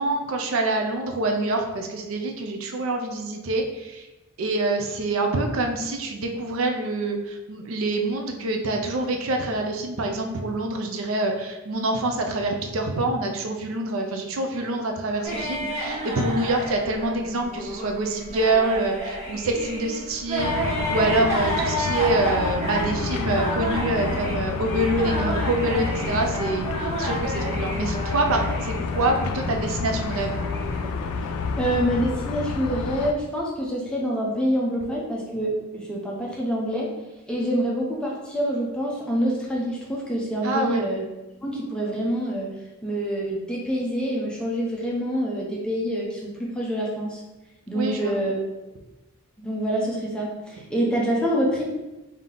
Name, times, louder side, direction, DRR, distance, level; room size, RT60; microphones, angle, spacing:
voice 1, 0.0-4.1 4.4-30.4 40.4-40.8 47.7-48.1, right 2 dB, 65° right, 3 dB, 0.5 m, -26 dB
sound 1, 15.2-31.6, right 1 dB, 30° right, 1.1 m, -31 dB
sound 2, 20.4-33.1, left 4 dB, 85° left, 0.3 m, -29 dB
voice 2, 31.6-36.9 37.3-41.0 41.4-42.5 42.8-47.2 47.7-48.3 49.4-51.6, equal, 5° left, -4 dB, 0.6 m, -26 dB
3.5 x 2.7 x 3.7 m, 1.1 s
head